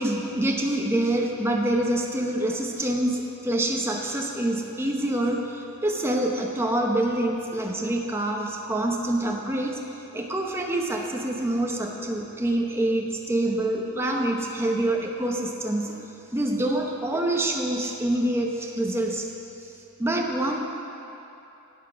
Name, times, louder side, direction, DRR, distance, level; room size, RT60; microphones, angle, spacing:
voice 1, 0.0-9.8 10.1-16.0 16.3-19.3 19.6-19.7 20.0-20.6, right 1 dB, 10° right, 0 dB, 0.9 m, -26 dB
13.0 x 8.2 x 6.2 m, 2.9 s
head